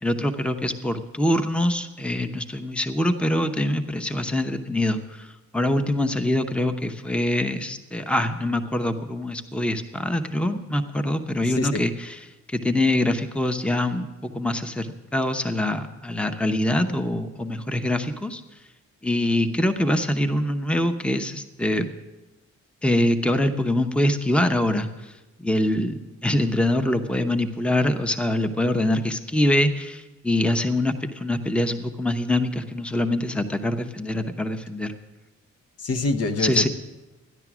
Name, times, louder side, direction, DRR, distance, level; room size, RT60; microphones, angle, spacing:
voice 1, 0.0-12.2 12.5-18.4 19.0-21.9 22.8-25.1 25.4-34.9 36.4-36.7, left 1 dB, 5° left, 8 dB, 0.8 m, -24 dB
voice 2, 11.5-11.8 35.8-36.7, left 3 dB, 55° left, 9 dB, 1.1 m, -25 dB
14.0 x 10.5 x 6.1 m, 1.1 s
cardioid pair, 90°, 30 cm